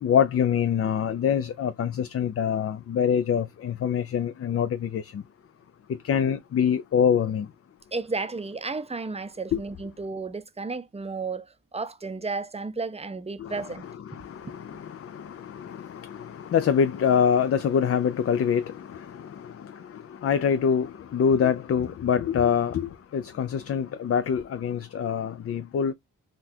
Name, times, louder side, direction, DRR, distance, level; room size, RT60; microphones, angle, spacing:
voice 1, 0.0-5.2 6.0-7.5 9.5-9.6 13.4-25.9, left 7 dB, 45° left, 0.4 m, -25 dB
voice 2, 7.9-11.5 11.7-13.8 14.4-14.5, right 4 dB, 20° right, 0.5 m, -33 dB
3.7 x 2.4 x 2.7 m
cardioid pair, 50°, 33 cm